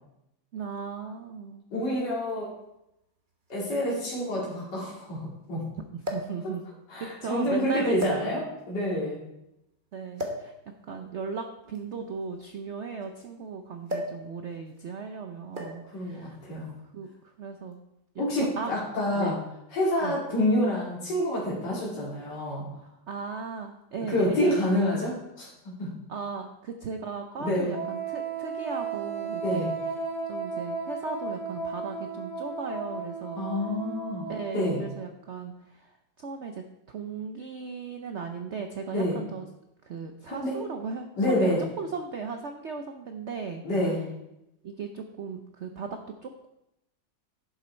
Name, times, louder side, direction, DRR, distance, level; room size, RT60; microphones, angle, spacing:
voice 1, 0.5-1.7 5.9-6.6 7.0-8.3 9.9-10.5 10.9-16.4 16.9-17.8 18.1-18.2 18.6-18.7 19.1-19.4 20.0-20.2 23.1-24.7 26.1-29.7 30.3-33.4 34.3-35.9 36.2-39.4 39.8-43.6 44.6-46.5, right 5 dB, 70° right, 5 dB, 0.6 m, -37 dB
voice 2, 1.7-2.5 3.5-5.6 6.9-8.4 8.7-9.2 15.9-16.7 18.2-19.4 19.7-22.6 24.1-25.9 27.4-27.7 29.4-29.7 33.4-34.3 34.5-34.8 38.9-39.2 40.3-40.6 41.2-41.6 43.6-44.0, left 1 dB, 65° left, -6 dB, 3.1 m, -27 dB
sound 1, 2.3-2.4 3.5-3.6 3.8-3.9 6.0-6.4 7.2-7.4 8.0-8.7 10.2-10.5 11.6-13.3 13.9-14.2 14.5-14.8 15.5-15.9 16.9-17.1, left 1 dB, 30° right, 1.4 m, -35 dB
Wind instrument woodwind instrument, 27.7-35.1, right 4 dB, 15° left, 4.4 m, -34 dB
11.0 x 6.9 x 4.4 m, 0.87 s
omnidirectional pair, 2.0 m